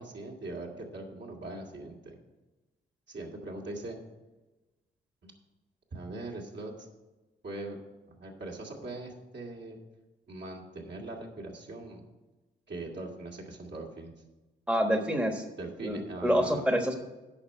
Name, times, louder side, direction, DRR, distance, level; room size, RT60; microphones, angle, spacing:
voice 1, 0.0-2.2 3.1-4.0 5.2-5.3 5.9-6.9 7.4-7.8 8.1-9.8 10.3-12.1 12.7-14.1 15.6-16.6, right 2 dB, 55° right, -2 dB, 2.3 m, -41 dB
voice 2, 14.7-15.4 15.8-16.9, equal, 5° right, 4 dB, 1.3 m, -27 dB
8.5 x 5.4 x 7.9 m, 1.1 s
cardioid pair, 55°, 21 cm